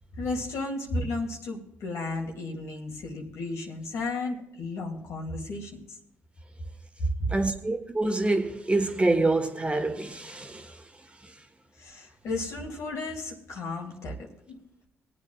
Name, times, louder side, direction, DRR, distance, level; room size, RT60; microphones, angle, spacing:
voice 1, 0.2-6.0 7.0-7.3 11.8-14.6, left 2 dB, 70° left, 2.7 m, -33 dB
voice 2, 7.3-11.4, right 2 dB, 20° right, 1.5 m, -27 dB
22.5 x 8.7 x 2.4 m
supercardioid pair, 55°, 5 cm